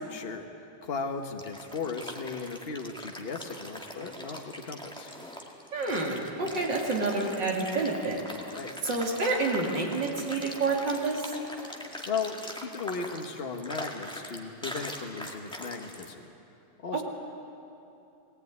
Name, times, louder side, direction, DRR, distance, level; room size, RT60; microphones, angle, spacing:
voice 1, 0.1-5.1 8.5-8.7 12.1-16.3 16.8-17.0, left 4 dB, 35° left, 5 dB, 1.4 m, -36 dB
sound 1, 1.1-16.1, equal, 5° left, 1.6 m, -42 dB
voice 2, 5.7-8.2 8.8-11.3, right 3 dB, 75° right, -1 dB, 3.3 m, -28 dB
20.0 x 18.0 x 9.5 m, 2.7 s
omnidirectional pair, 2.0 m